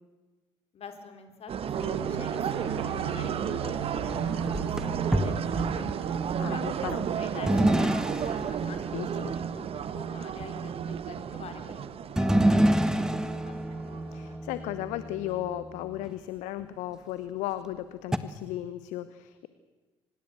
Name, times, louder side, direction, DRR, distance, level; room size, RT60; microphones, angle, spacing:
voice 1, 0.7-5.9 6.5-13.6, left 5 dB, 50° left, 7 dB, 4.1 m, -47 dB
sound 1, 1.5-14.4, right 7 dB, 45° right, 1.3 m, -33 dB
sound 2, 1.7-8.3, right 9 dB, 85° right, 0.8 m, -40 dB
sound 3, 3.6-6.2 7.5-8.7 12.2-16.1 16.6-16.7 18.1-18.2, right 1 dB, 5° right, 1.6 m, -27 dB
voice 2, 6.4-7.0 8.9-9.3 14.1-19.5, left 14 dB, 65° left, 14 dB, 1.0 m, -35 dB
25.0 x 20.0 x 8.0 m, 1.2 s
figure-of-eight pair, 50°, 13 cm